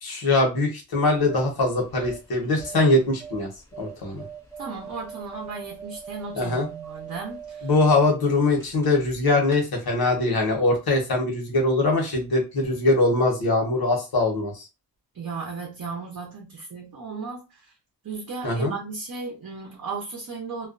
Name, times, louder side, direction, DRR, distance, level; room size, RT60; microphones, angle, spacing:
voice 1, 0.0-3.5 3.8-4.2 6.4-6.7 7.6-14.6 18.4-18.7, left 2 dB, 65° left, 1 dB, 1.0 m, -22 dB
sound 1, 1.0-9.2 9.4-9.6, right 7 dB, 5° left, 0.7 m, -42 dB
voice 2, 4.6-7.7 15.1-17.7 18.0-20.7, right 4 dB, 50° right, -1 dB, 0.7 m, -35 dB
2.3 x 2.2 x 2.4 m, 0.28 s
wide cardioid pair, 150°, 39 cm